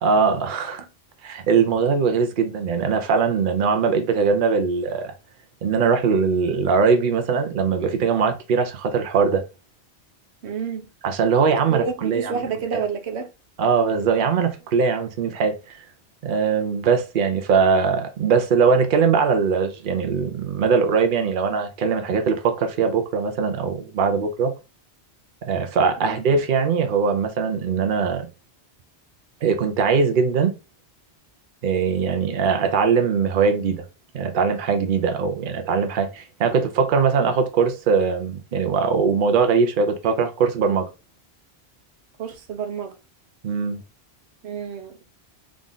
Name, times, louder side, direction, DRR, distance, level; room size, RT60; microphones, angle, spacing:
voice 1, 0.0-0.9 1.2-5.1 5.6-9.4 11.0-12.4 12.7-12.8 13.6-15.8 16.2-24.5 25.4-28.3 29.4-30.5 31.6-33.8 34.1-40.9 43.4-43.8, right 5 dB, 55° right, 0.8 m, -21 dB
voice 2, 10.4-10.9 11.7-13.3 26.0-26.2 42.2-42.9 44.4-44.9, right 6 dB, 90° right, 1.0 m, -29 dB
3.7 x 2.5 x 3.8 m
omnidirectional pair, 1.1 m